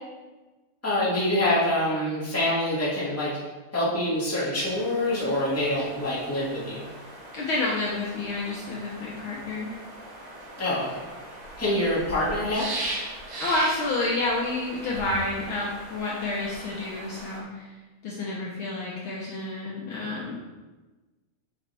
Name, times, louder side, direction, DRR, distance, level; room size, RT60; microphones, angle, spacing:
voice 1, 0.8-3.4 3.7-6.9 10.6-11.0 11.6-12.6, left 1 dB, 5° left, -8 dB, 1.3 m, -25 dB
sound 1, 4.6-17.4, right 1 dB, 60° right, 2.5 m, -39 dB
voice 2, 7.3-9.7 13.4-17.7 18.0-20.4, left 2 dB, 90° left, -4 dB, 1.1 m, -29 dB
7.7 x 5.6 x 3.4 m, 1.2 s
omnidirectional pair, 3.7 m